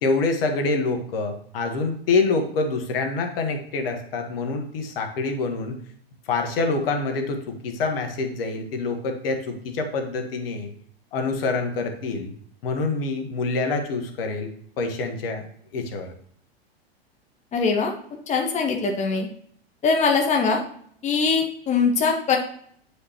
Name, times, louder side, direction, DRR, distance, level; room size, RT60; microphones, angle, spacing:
voice 1, 0.0-5.8 6.3-10.7 11.1-12.3 12.6-14.5 14.8-15.4 15.7-16.1, left 3 dB, 65° left, 5 dB, 1.5 m, -26 dB
voice 2, 17.5-17.9 18.3-19.3 19.8-20.6 21.0-22.4, left 5 dB, 20° left, 2 dB, 1.2 m, -22 dB
9.7 x 5.0 x 3.0 m, 0.62 s
hypercardioid pair, 105°, 31 cm